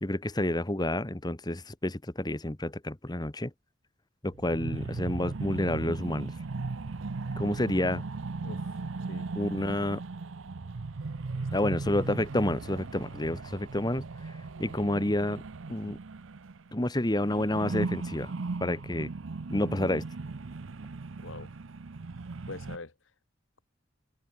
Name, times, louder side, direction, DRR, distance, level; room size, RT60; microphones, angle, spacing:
voice 1, 0.0-3.5 4.2-6.3 7.4-8.0 9.4-10.0 11.5-15.4 15.7-16.0 16.7-18.3 18.6-19.1 19.5-20.0, left 1 dB, 20° left, 1.2 m, -29 dB
sound 1, 4.3-16.7 17.0-22.8, right 3 dB, 80° right, 0.7 m, -37 dB
voice 2, 8.4-8.8 9.1-9.3 11.3-11.5 21.2-21.5 22.5-22.9, left 3 dB, 75° left, 1.5 m, -43 dB
open air
head